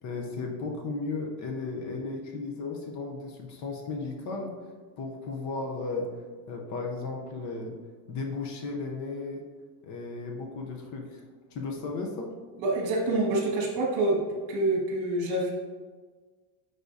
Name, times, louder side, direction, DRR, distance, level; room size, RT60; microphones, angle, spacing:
voice 1, 0.0-4.5 5.0-6.1 6.5-7.7 8.1-9.4 9.8-11.2 11.5-12.3, left 3 dB, 40° left, 2 dB, 0.7 m, -35 dB
voice 2, 12.6-14.2 14.5-15.5, right 2 dB, 60° right, -2 dB, 1.7 m, -26 dB
9.9 x 3.9 x 2.6 m, 1.5 s
cardioid pair, 170°, 47 cm